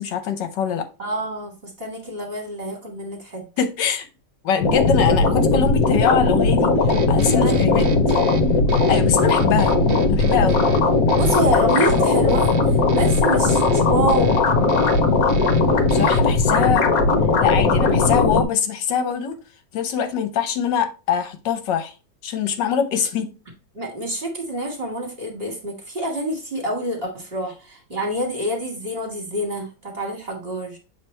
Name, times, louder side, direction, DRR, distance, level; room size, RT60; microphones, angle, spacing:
voice 1, 0.0-0.9 3.6-4.1 4.4-6.7 7.1-7.9 8.7-9.8 10.1-10.6 15.9-16.9 17.4-19.4 19.7-21.9 22.2-23.3, left 7 dB, 70° left, 1.4 m, -23 dB
voice 2, 1.0-3.4 6.7-6.9 7.2-8.1 11.1-14.4 23.7-30.8, equal, 30° right, 1.8 m, -27 dB
sound 1, 4.6-18.4, left 3 dB, 55° left, 1.2 m, -18 dB
sound 2, 6.9-16.4, right 4 dB, 65° right, 0.5 m, -36 dB
7.2 x 3.2 x 4.3 m
omnidirectional pair, 2.0 m